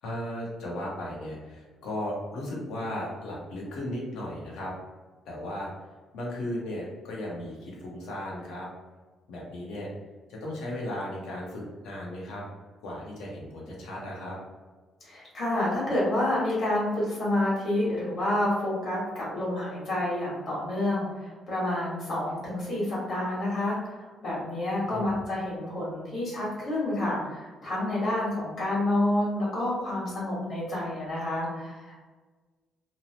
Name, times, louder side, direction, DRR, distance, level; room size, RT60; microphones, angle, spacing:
voice 1, 0.0-4.7 5.3-5.7 6.1-8.7 9.3-9.9 10.3-12.4 12.8-14.4 24.9-25.1, left 1 dB, 85° left, -3 dB, 0.8 m, -36 dB
voice 2, 15.0-32.0, left 1 dB, 45° left, -7 dB, 1.3 m, -29 dB
2.8 x 2.0 x 2.8 m, 1.3 s
cardioid pair, 170°, 0 cm